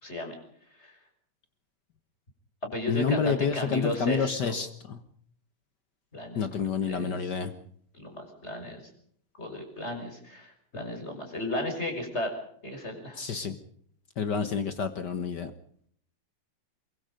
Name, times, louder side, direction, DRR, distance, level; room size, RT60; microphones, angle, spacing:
voice 1, 0.0-0.4 0.8-0.9 2.7-4.6 6.1-7.3 7.9-8.8 9.4-12.4 12.6-13.2, left 1 dB, 15° left, 4 dB, 5.9 m, -35 dB
voice 2, 2.9-5.0 6.3-7.5 13.2-13.5 14.2-15.5, left 6 dB, 85° left, 10 dB, 0.9 m, -29 dB
23.5 x 23.0 x 5.2 m, 0.63 s
omnidirectional pair, 4.0 m